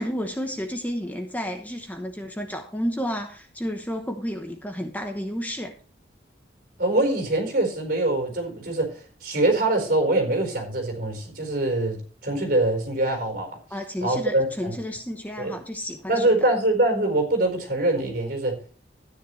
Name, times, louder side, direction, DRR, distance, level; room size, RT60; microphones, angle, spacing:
voice 1, 0.0-5.7 13.7-16.3, equal, 10° left, 1.0 m, -31 dB
voice 2, 6.8-13.6 14.0-14.7 15.4-15.6 16.1-18.6, right 2 dB, 55° right, 4.5 m, -24 dB
13.5 x 9.9 x 3.2 m
head